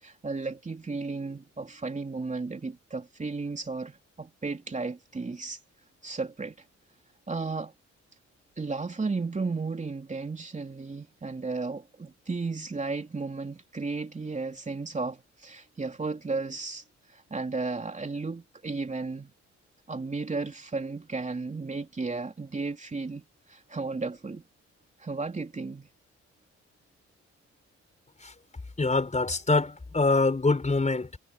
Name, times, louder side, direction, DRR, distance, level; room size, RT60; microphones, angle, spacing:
voice 1, 0.0-5.6 6.0-6.5 7.3-7.7 8.6-16.8 17.1-19.3 19.9-24.4 25.0-25.9, right 3 dB, 25° right, 3.1 m, -34 dB
voice 2, 28.8-31.2, left 3 dB, 25° left, 5.5 m, -25 dB
cardioid pair, 90°, 29 cm